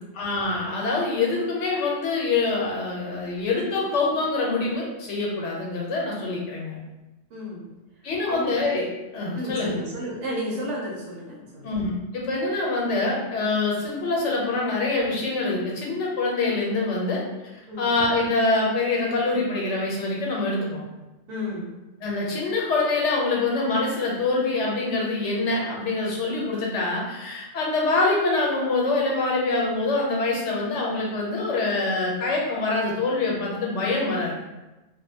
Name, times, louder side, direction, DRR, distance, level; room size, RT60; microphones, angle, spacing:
voice 1, 0.1-6.8 8.0-8.9 9.1-9.8 11.6-17.2 17.8-20.8 22.0-34.4, left 3 dB, 85° left, -3 dB, 1.0 m, -25 dB
voice 2, 7.3-7.7 8.2-8.5 9.3-11.7 17.7-17.9 21.3-21.7, equal, 85° right, -4 dB, 1.1 m, -32 dB
2.6 x 2.1 x 2.7 m, 1.1 s
omnidirectional pair, 1.2 m